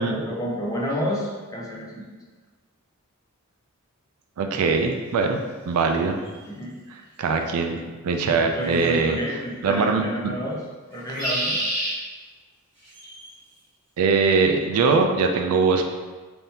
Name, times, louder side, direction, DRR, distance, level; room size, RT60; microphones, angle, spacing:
voice 1, 0.0-2.0 6.5-6.8 8.3-10.6 10.9-11.6, equal, 15° left, -3 dB, 0.5 m, -30 dB
voice 2, 4.4-6.2 7.2-7.8 8.0-9.2 9.6-10.0 14.0-15.9, right 4 dB, 80° right, 5 dB, 0.4 m, -21 dB
sound 1, 6.2-6.3 8.8-9.2 10.9-11.9 12.9-13.3, right 1 dB, 55° right, 1.3 m, -28 dB
3.5 x 2.7 x 2.7 m, 1.3 s
head